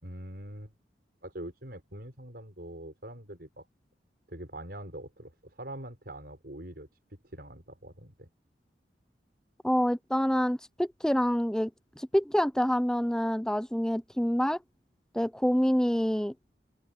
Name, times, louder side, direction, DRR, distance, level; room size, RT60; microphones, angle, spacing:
voice 1, 0.0-0.7 1.2-3.7 4.3-6.9 7.2-8.3, right 1 dB, 60° right, 5.9 m, -43 dB
voice 2, 9.6-11.7 12.0-14.6 15.1-16.3, equal, 5° left, 0.6 m, -27 dB
head